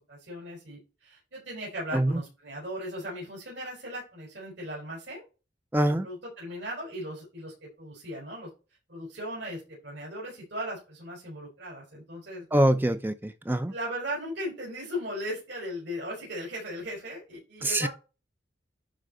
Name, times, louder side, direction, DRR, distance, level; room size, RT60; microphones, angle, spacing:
voice 1, 0.1-5.2 6.0-8.5 8.9-12.5 13.7-17.9, equal, 70° right, 5.1 m, -37 dB
voice 2, 5.7-6.1 12.5-13.7 17.6-17.9, right 1 dB, 10° right, 0.5 m, -24 dB
11.5 x 4.3 x 3.9 m
head